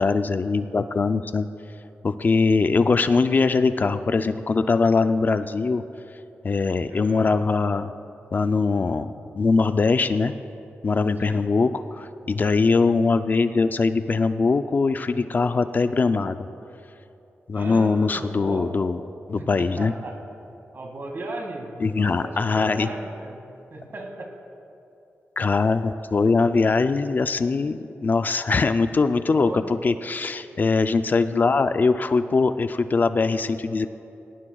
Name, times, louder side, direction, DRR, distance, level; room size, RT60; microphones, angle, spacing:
voice 1, 0.0-1.5 2.0-5.8 6.4-7.9 8.3-10.3 10.8-16.4 17.5-19.0 19.3-19.9 21.8-22.9 25.4-33.9, left 4 dB, 40° left, 10 dB, 0.4 m, -22 dB
voice 2, 6.9-7.3 11.2-11.5 17.5-18.7 19.4-20.2 20.7-23.4 23.7-24.3 29.3-29.7, right 2 dB, 55° right, 2 dB, 2.1 m, -36 dB
18.5 x 17.0 x 2.3 m, 2.7 s
wide cardioid pair, 95°, 5 cm